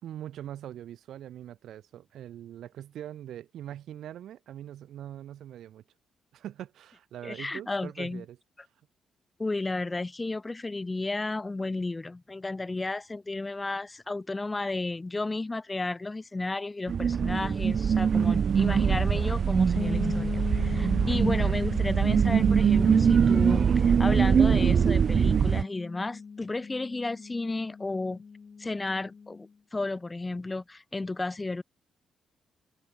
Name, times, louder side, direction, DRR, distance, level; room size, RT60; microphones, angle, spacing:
voice 1, 0.0-5.8 6.3-8.4, right 11 dB, 75° right, 3.7 m, -42 dB
voice 2, 7.2-8.2 9.4-28.2 28.6-31.6, left 2 dB, 15° left, 1.6 m, -33 dB
sound 1, 16.9-25.6, right 7 dB, 40° right, 0.6 m, -23 dB
sound 2, 19.8-29.4, left 5 dB, 30° left, 1.0 m, -38 dB
open air
cardioid pair, 165°, 0 cm